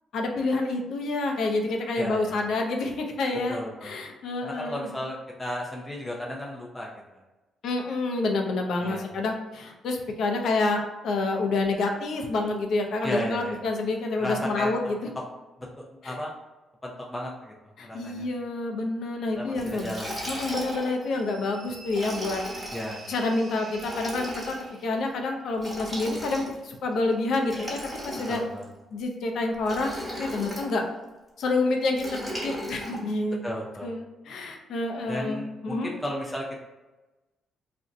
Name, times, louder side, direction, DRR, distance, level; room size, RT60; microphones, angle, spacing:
voice 1, 0.1-4.9 7.6-15.0 16.0-16.1 17.8-20.0 20.3-22.4 23.1-24.5 24.8-27.8 28.0-28.4 28.9-29.9 30.2-30.8 31.4-32.1 32.4-33.4 33.8-35.9, left 2 dB, 70° left, 3 dB, 0.5 m, -28 dB
voice 2, 1.9-2.3 3.5-3.9 4.4-7.2 8.8-9.1 13.0-13.6 14.2-14.7 15.6-16.3 16.8-17.5 17.8-18.3 19.3-20.2 22.7-23.0 28.3-28.7 33.4-33.9 35.1-36.6, left 1 dB, 15° left, -2 dB, 0.5 m, -34 dB
Liquid, 19.6-21.0 21.9-22.9 23.7-24.6 25.6-26.7 27.4-28.6 29.6-30.7 32.0-33.0, equal, 5° right, 1.2 m, -36 dB
sound 1, 21.0-25.2, right 3 dB, 50° right, 0.5 m, -46 dB
2.6 x 2.1 x 3.7 m, 1.1 s
cardioid pair, 90°, 0 cm